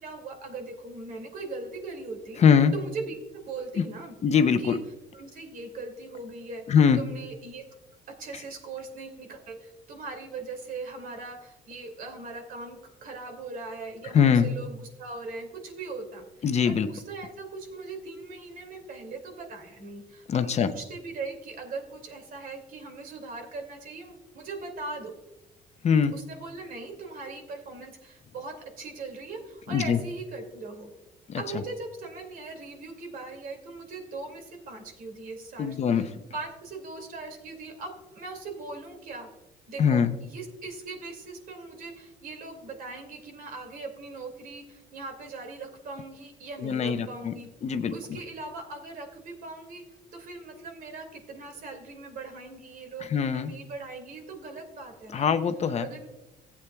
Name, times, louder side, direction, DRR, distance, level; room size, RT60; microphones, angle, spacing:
voice 1, 0.0-2.4 2.7-4.1 4.6-4.8 5.1-6.6 6.9-7.6 8.1-16.2 16.6-25.1 26.1-30.9 31.3-39.3 39.7-47.5 47.9-49.8 50.1-55.3 55.8-56.1, right 3 dB, 55° right, 3 dB, 2.4 m, -40 dB
voice 2, 2.4-2.7 3.8-3.9 4.2-4.8 6.7-7.0 8.3-8.4 14.1-14.5 16.4-16.9 20.3-20.7 25.8-26.1 29.7-30.0 31.3-31.4 35.6-36.1 39.8-40.1 46.6-47.3 47.6-47.9 53.1-53.5 55.1-55.9, left 7 dB, 40° left, 9 dB, 0.7 m, -22 dB
16.0 x 8.3 x 2.3 m, 0.96 s
cardioid pair, 110°, 17 cm